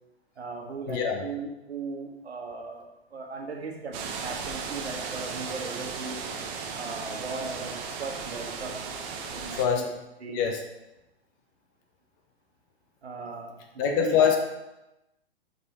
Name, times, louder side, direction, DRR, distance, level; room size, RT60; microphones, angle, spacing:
voice 1, 0.4-2.9 3.1-3.9 4.2-6.2 6.8-8.8 9.3-9.9 10.2-10.4 13.0-14.4, right 4 dB, 80° right, 1 dB, 1.4 m, -37 dB
voice 2, 0.9-1.2 9.6-9.9 10.3-10.6 13.8-14.4, left 7 dB, 20° left, 3 dB, 0.4 m, -24 dB
sound 1, 3.9-9.7, right 5 dB, 25° right, 0.6 m, -36 dB
5.3 x 4.8 x 4.1 m, 0.96 s
hypercardioid pair, 125°, 32 cm